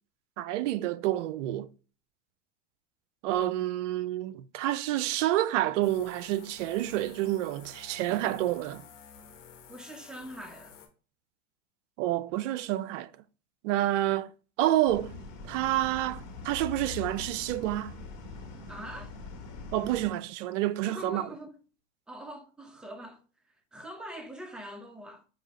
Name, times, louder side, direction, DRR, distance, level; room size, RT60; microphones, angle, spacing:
voice 1, 0.4-1.7 3.2-8.8 12.0-13.1 13.6-14.3 14.6-15.1 15.5-18.0 19.7-21.2, right 14 dB, 70° right, 0.5 m, -28 dB
sound 1, 5.8-10.9, left 7 dB, 65° left, 1.3 m, -52 dB
voice 2, 9.7-10.8 18.7-19.1 20.8-21.6 22.1-25.3, equal, ahead, 0.7 m, -43 dB
sound 2, 14.9-20.1, left 4 dB, 50° left, 1.6 m, -43 dB
5.4 x 2.7 x 3.0 m
hypercardioid pair, 95°, 38 cm